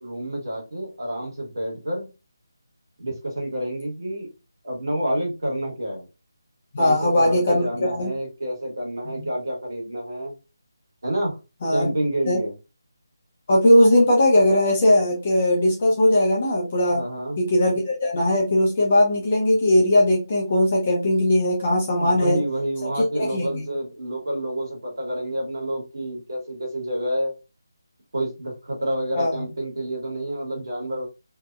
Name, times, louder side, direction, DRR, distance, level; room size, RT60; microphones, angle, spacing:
voice 1, 0.0-2.1 3.0-4.3 4.6-6.1 6.8-10.3 11.0-11.4 11.7-12.5 16.9-17.4 22.0-27.3 28.1-31.1, right 1 dB, 65° right, -1 dB, 1.3 m, -28 dB
voice 2, 6.7-8.1 11.6-11.9 12.3-12.4 13.5-17.0 17.4-22.4 22.8-22.9 23.2-23.6 29.1-29.3, left 1 dB, 20° left, -2 dB, 0.5 m, -19 dB
2.7 x 2.1 x 2.4 m, 0.28 s
figure-of-eight pair, 180°, 2 cm